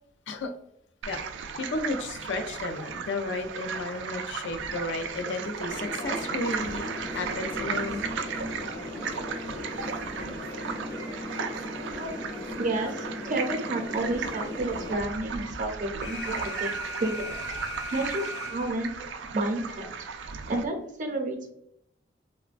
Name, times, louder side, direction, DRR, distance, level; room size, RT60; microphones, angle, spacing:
sound 1, 1.0-20.6, right 6 dB, 90° right, 0.3 m, -36 dB
voice 1, 1.5-8.0, left 2 dB, 85° left, 7 dB, 0.4 m, -33 dB
sound 2, 5.7-14.9, left 2 dB, 20° left, 0.5 m, -38 dB
voice 2, 12.6-16.7 17.0-17.4 17.9-18.9 19.3-19.9 20.5-21.5, right 2 dB, 45° right, 3 dB, 0.6 m, -30 dB
Alarm, 16.0-19.0, equal, 65° left, 0.9 m, -38 dB
3.1 x 2.1 x 2.4 m, 0.75 s
head